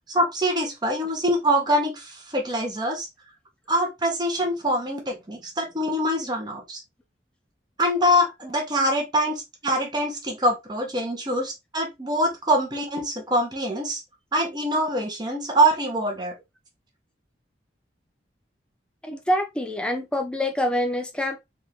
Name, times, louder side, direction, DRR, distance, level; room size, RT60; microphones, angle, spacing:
voice 1, 0.1-3.1 3.7-6.8 7.8-14.0 14.3-16.3, equal, 25° right, 1.0 m, -24 dB
voice 2, 19.0-21.4, left 1 dB, 5° left, 0.5 m, -26 dB
3.7 x 2.6 x 2.9 m
head